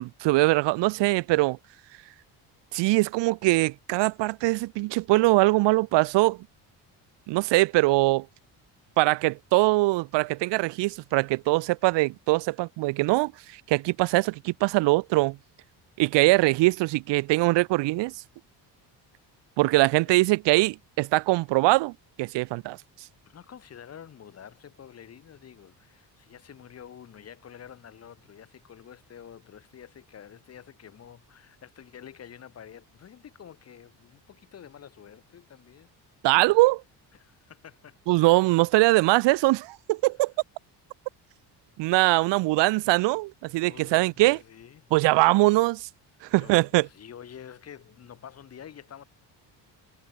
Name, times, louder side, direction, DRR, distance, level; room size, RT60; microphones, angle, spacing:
voice 1, 0.0-1.6 2.7-6.4 7.3-8.3 9.0-13.3 13.7-15.4 16.0-18.1 19.6-21.9 22.2-22.8 36.2-36.8 38.1-40.3 41.8-44.4 44.9-45.9 46.2-46.9, right 21 dB, 80° right, 0.8 m, -22 dB
voice 2, 23.2-35.9 36.4-36.6 37.1-38.6 43.6-44.9 46.3-49.0, left 9 dB, 35° left, 3.4 m, -48 dB
cardioid pair, 180°, 42 cm